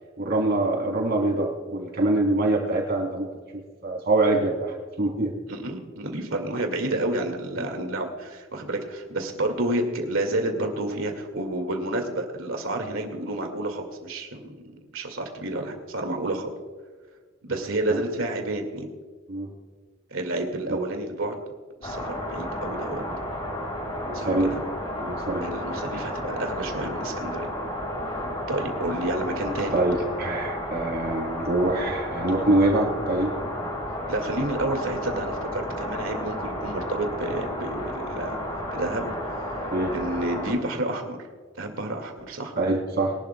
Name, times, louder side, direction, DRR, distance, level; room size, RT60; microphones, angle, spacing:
voice 1, 0.2-3.3 3.5-5.3 17.9-18.0 19.3-19.5 20.7-20.9 24.0-24.5 25.0-25.5 28.2-28.4 29.7-33.3 39.7-39.9 42.6-43.1, right 2 dB, 50° right, -1 dB, 3.9 m, -24 dB
voice 2, 5.5-14.5 14.9-16.5 17.5-18.9 20.1-21.4 21.8-23.0 24.1-24.6 25.4-27.5 28.5-29.8 34.1-38.4 38.7-39.7 39.9-41.2 41.6-42.5, right 1 dB, 80° right, 4 dB, 2.2 m, -30 dB
sound 1, 21.8-40.5, left 1 dB, 25° left, 3.3 m, -32 dB
22.5 x 12.0 x 2.3 m, 1.5 s
head